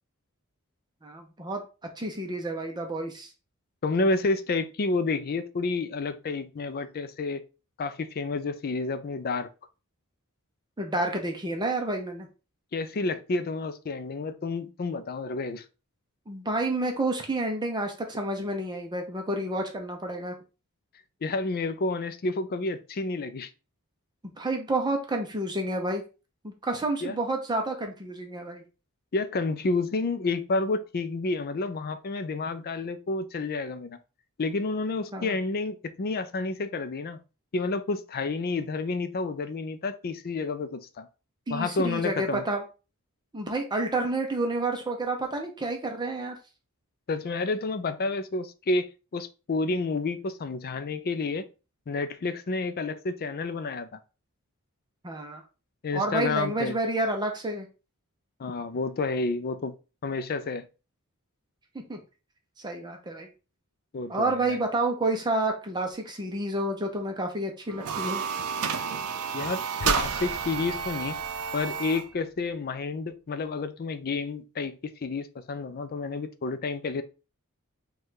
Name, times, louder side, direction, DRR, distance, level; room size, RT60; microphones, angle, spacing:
voice 1, 1.0-1.6 2.0-3.3 10.8-12.3 16.3-20.3 24.4-26.0 26.4-28.6 35.1-35.3 41.5-42.6 43.3-46.4 55.0-55.4 55.9-57.7 61.7-62.0 62.6-63.3 64.1-68.2, right 2 dB, 20° right, 0.6 m, -29 dB
voice 2, 3.8-7.4 7.8-9.5 12.7-15.6 21.2-23.5 27.0-27.2 29.1-34.0 34.4-37.2 37.5-41.1 41.5-42.4 47.1-51.5 51.9-54.0 55.8-56.8 58.4-59.7 60.0-60.7 63.9-64.6 69.3-71.2 71.5-77.0, left 3 dB, 45° left, 0.4 m, -30 dB
sound 1, 67.7-72.1, right 6 dB, 75° right, 0.5 m, -30 dB
sound 2, 69.8-72.8, equal, 80° left, 0.9 m, -40 dB
5.2 x 2.3 x 3.7 m
head